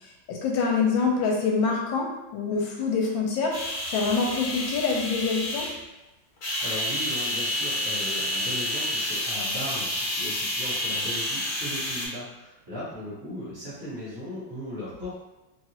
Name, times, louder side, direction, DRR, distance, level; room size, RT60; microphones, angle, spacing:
voice 1, 0.0-2.1 2.3-5.7, left 4 dB, 85° left, 0 dB, 1.4 m, -26 dB
sound 1, 3.5-5.8 6.4-12.1, left 1 dB, 55° left, 1.3 m, -29 dB
voice 2, 6.6-15.2, left 1 dB, 55° right, -9 dB, 1.2 m, -37 dB
3.0 x 2.4 x 2.8 m, 1.0 s
omnidirectional pair, 2.1 m